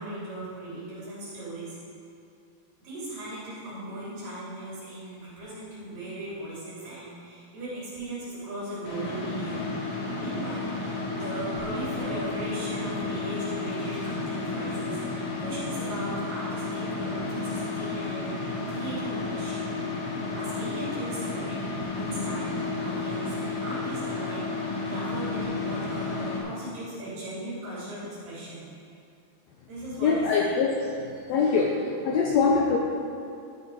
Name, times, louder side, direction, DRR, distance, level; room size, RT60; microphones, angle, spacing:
voice 1, 0.0-1.8 2.8-9.6 10.2-19.6 20.2-28.7 29.7-30.2, right 1 dB, 65° right, -10 dB, 4.9 m, -38 dB
sound 1, 8.8-26.4, left 3 dB, 65° left, 3.4 m, -32 dB
voice 2, 30.0-30.9 31.3-31.7 32.0-32.8, left 5 dB, 85° left, 0 dB, 1.5 m, -23 dB
13.5 x 7.5 x 5.1 m, 2.5 s
omnidirectional pair, 4.1 m